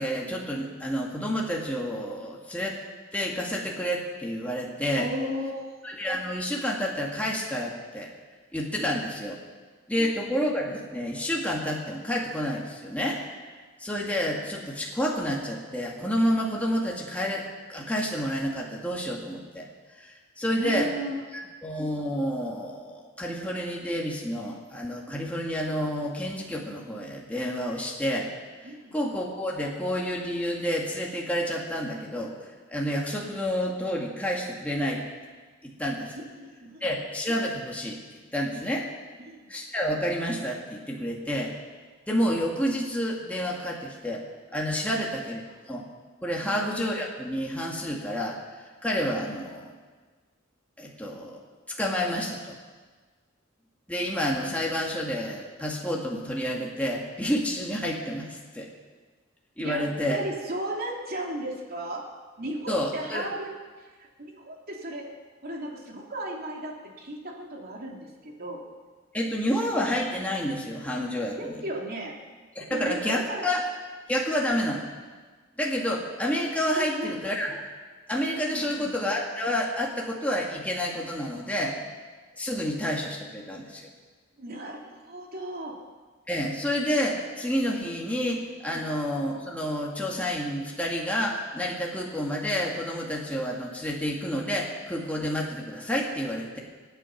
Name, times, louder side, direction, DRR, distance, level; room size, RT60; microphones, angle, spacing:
voice 1, 0.0-2.8 3.1-5.1 5.8-8.1 8.5-9.4 9.9-13.2 13.8-19.7 20.0-20.9 21.6-28.3 28.6-32.3 32.7-35.0 35.6-36.2 36.8-38.0 38.3-38.9 39.5-41.5 42.1-44.2 44.5-45.8 46.2-49.8 50.8-51.4 51.8-52.6 53.9-58.7 59.6-60.2 62.7-63.3 69.1-71.6 72.6-73.6 74.1-74.9 75.6-77.6 78.1-81.8 82.4-83.9 86.3-96.6, equal, 5° left, -2 dB, 2.0 m, -29 dB
voice 2, 5.0-5.7 10.0-10.3 20.6-21.5 28.6-28.9 36.4-36.9 39.3-39.4 44.9-45.1 46.4-46.6 59.6-59.8 60.1-62.0 62.4-63.5 63.8-65.0 65.4-68.6 71.4-72.2 72.7-73.5 76.7-77.2 78.5-78.9 84.4-85.7, right 1 dB, 50° right, -1 dB, 2.9 m, -35 dB
24.5 x 9.1 x 5.8 m, 1.4 s
head